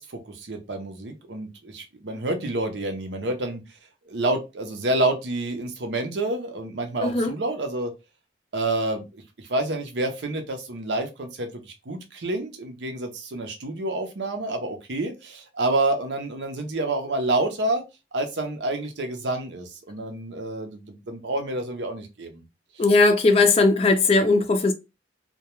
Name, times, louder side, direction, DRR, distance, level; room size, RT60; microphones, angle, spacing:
voice 1, 0.0-3.6 4.1-7.9 8.5-17.8 18.1-22.4, right 2 dB, 85° right, 0.7 m, -28 dB
voice 2, 7.0-7.3 22.8-24.7, left 3 dB, 35° left, 0.3 m, -18 dB
2.2 x 2.2 x 2.9 m
head